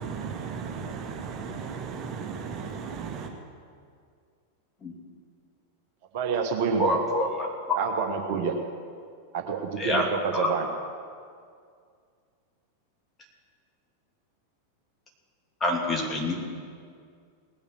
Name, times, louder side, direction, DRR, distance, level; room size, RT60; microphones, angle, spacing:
voice 1, 0.0-3.3, right 6 dB, 30° right, 0 dB, 1.8 m, -35 dB
voice 2, 6.1-7.0 7.7-8.5 9.3-10.7, right 6 dB, 50° right, 4 dB, 1.2 m, -27 dB
voice 3, 6.8-7.5 9.8-10.1 10.3-10.5 15.6-16.3, left 1 dB, 20° left, -1 dB, 2.8 m, -26 dB
19.0 x 7.1 x 7.9 m, 2.2 s
figure-of-eight pair, 90°, 0 cm